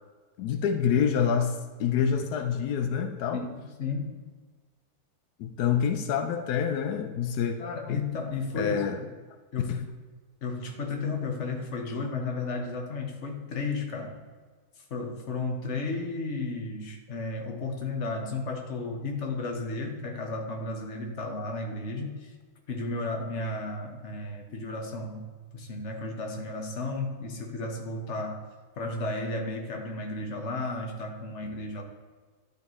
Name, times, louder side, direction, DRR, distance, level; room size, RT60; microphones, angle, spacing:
voice 1, 0.4-1.5 1.8-3.4 5.4-7.6 7.9-8.0 8.6-9.0 9.7-9.9, left 7 dB, 90° left, 7 dB, 0.8 m, -27 dB
voice 2, 3.3-4.1 7.6-9.1 9.5-9.8 10.4-14.2 14.8-22.3 22.7-25.3 25.5-28.4 28.8-31.8, left 3 dB, 45° left, 2 dB, 1.1 m, -33 dB
11.5 x 5.2 x 3.1 m, 1.4 s
omnidirectional pair, 2.3 m